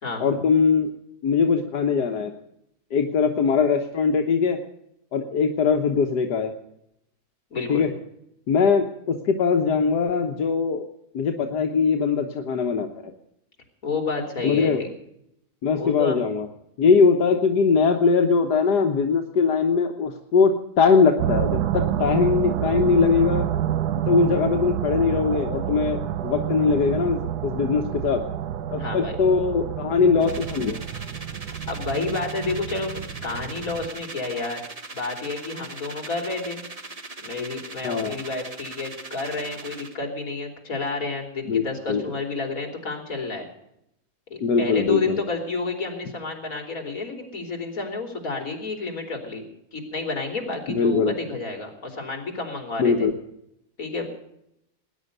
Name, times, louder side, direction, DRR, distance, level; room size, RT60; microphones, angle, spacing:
voice 1, 0.2-0.9 1.2-2.3 2.9-4.6 5.1-6.5 7.7-7.9 8.5-10.8 11.1-13.1 14.4-14.8 15.6-16.5 16.8-20.5 20.8-23.5 24.1-28.3 28.7-30.8 37.8-38.2 41.5-42.0 44.4-45.2 50.7-51.1 52.8-53.1, left 5 dB, 85° left, 4 dB, 1.7 m, -21 dB
voice 2, 7.5-7.9 13.8-14.9 15.7-16.2 28.8-29.2 31.7-34.6 34.9-36.6 37.2-43.5 44.3-49.4 49.7-53.1 53.8-54.2, left 3 dB, 55° left, 3 dB, 3.7 m, -30 dB
sound 1, 21.2-33.9, right 11 dB, 80° right, 1.4 m, -28 dB
sound 2, 30.2-39.9, right 3 dB, 25° right, 1.1 m, -40 dB
19.5 x 10.5 x 6.7 m, 0.79 s
omnidirectional pair, 1.7 m